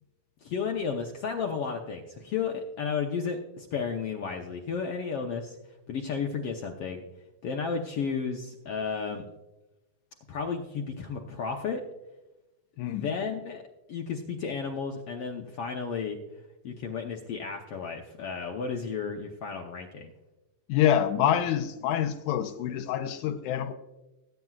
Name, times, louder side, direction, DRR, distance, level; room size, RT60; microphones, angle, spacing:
voice 1, 0.4-5.6 5.9-7.0 7.4-9.2 10.3-11.8 12.8-13.6 13.9-16.2 16.6-20.1, left 5 dB, 70° left, 2 dB, 1.5 m, -33 dB
voice 2, 12.8-13.1 20.7-23.7, left 10 dB, 90° left, 6 dB, 2.2 m, -26 dB
21.0 x 9.2 x 2.4 m, 1.0 s
omnidirectional pair, 3.6 m